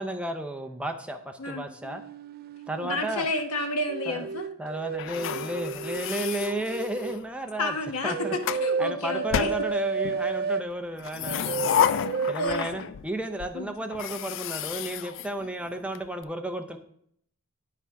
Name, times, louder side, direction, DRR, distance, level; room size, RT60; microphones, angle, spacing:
voice 1, 0.0-2.0 2.7-3.3 4.1-4.3 4.6-7.7 8.0-8.3 8.8-11.8 12.3-16.8, right 1 dB, 5° right, 5 dB, 0.6 m, -33 dB
sound 1, 1.8-3.2 3.9-7.2 8.0-10.7 11.2-12.4, right 5 dB, 45° right, 0.3 m, -32 dB
voice 2, 2.8-4.5 7.6-8.1 8.5-9.5 12.2-12.8 13.5-13.7, left 1 dB, 75° left, 5 dB, 1.2 m, -30 dB
sound 2, 5.0-7.3 8.0-8.7 9.3-10.2 11.0-13.1 13.4-13.5 13.9-16.0, left 9 dB, 60° left, 0.3 m, -31 dB
9.8 x 5.8 x 4.7 m, 0.66 s
head